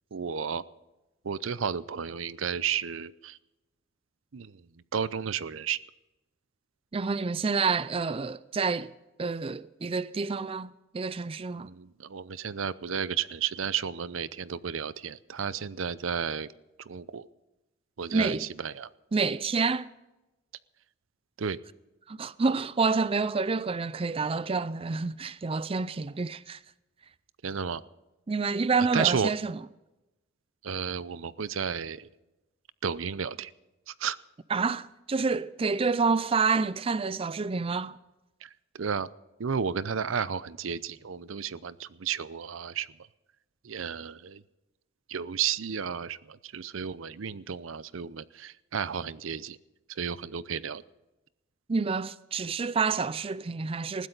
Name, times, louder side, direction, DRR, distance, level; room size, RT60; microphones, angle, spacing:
voice 1, 0.1-0.6 1.2-3.4 4.3-4.7 4.9-5.8 11.5-16.5 16.8-17.3 18.0-18.9 21.4-21.6 27.4-27.8 28.8-29.3 30.6-32.1 32.8-33.5 33.9-34.2 38.4-39.1 39.4-42.9 43.6-44.4 45.1-49.6 49.9-50.8, right 7 dB, 75° right, 0.6 m, -32 dB
voice 2, 6.9-8.9 9.2-11.7 18.1-18.4 19.1-19.9 22.1-26.6 28.3-29.6 34.5-38.0 51.7-54.1, right 4 dB, 30° right, 0.4 m, -28 dB
20.5 x 15.5 x 4.0 m
head